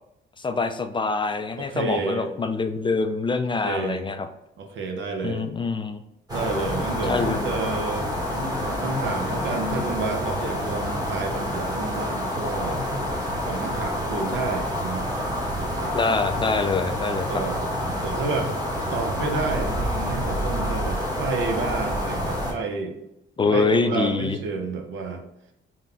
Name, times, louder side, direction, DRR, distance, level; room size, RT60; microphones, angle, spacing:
voice 1, 0.4-4.3 5.2-6.0 7.0-7.6 15.9-17.4 23.4-24.4, left 4 dB, 25° left, 8 dB, 0.3 m, -25 dB
voice 2, 1.6-2.3 3.6-4.0 4.6-5.5 6.3-12.8 13.4-15.1 15.6-16.0 17.3-17.6 18.0-18.5 18.9-23.0 23.5-25.2, right 3 dB, 75° right, 4 dB, 0.8 m, -30 dB
sound 1, 6.3-22.5, equal, 20° right, 1.1 m, -28 dB
3.7 x 2.2 x 3.9 m, 0.87 s
cardioid pair, 90°, 20 cm